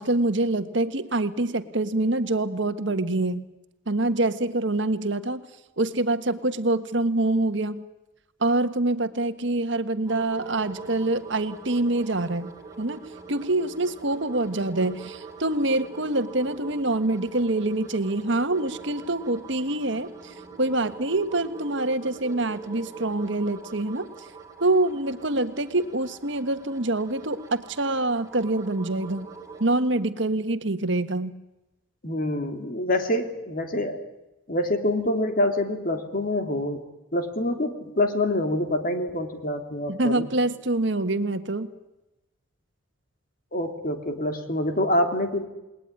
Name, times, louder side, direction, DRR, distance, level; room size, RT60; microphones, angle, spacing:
voice 1, 0.0-3.4 3.9-5.4 5.8-7.8 8.4-12.5 12.8-24.1 24.6-29.3 29.6-31.3 39.9-41.7, right 2 dB, 60° right, 9 dB, 1.6 m, -25 dB
sound 1, 10.1-29.8, right 5 dB, 15° right, 4.2 m, -43 dB
voice 2, 32.0-34.0 34.5-36.8 37.1-40.2 43.5-45.5, left 1 dB, 45° left, 6 dB, 3.1 m, -26 dB
28.5 x 20.5 x 9.8 m, 1.0 s
head